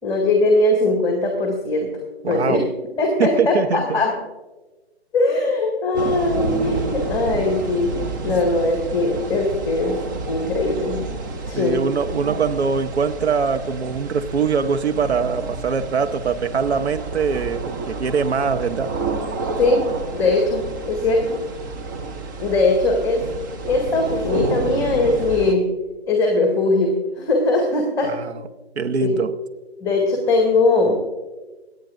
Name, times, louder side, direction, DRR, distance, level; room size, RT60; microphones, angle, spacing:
voice 1, 0.0-1.9 2.3-2.6 3.0-4.1 5.1-10.0 10.3-11.0 11.4-11.8 19.5-19.8 20.1-21.4 22.4-23.3 23.7-25.7 26.1-28.1 29.0-29.1 29.8-31.0, left 2 dB, 10° left, 1 dB, 1.8 m, -20 dB
voice 2, 2.2-2.7 3.2-4.0 8.3-8.4 11.5-18.9 28.0-28.5 28.8-29.3, right 5 dB, 80° right, 9 dB, 0.9 m, -23 dB
sound 1, 5.9-25.5, right 3 dB, 20° right, 0.5 m, -30 dB
25.5 x 9.2 x 2.5 m, 1.2 s
figure-of-eight pair, 135°, 32 cm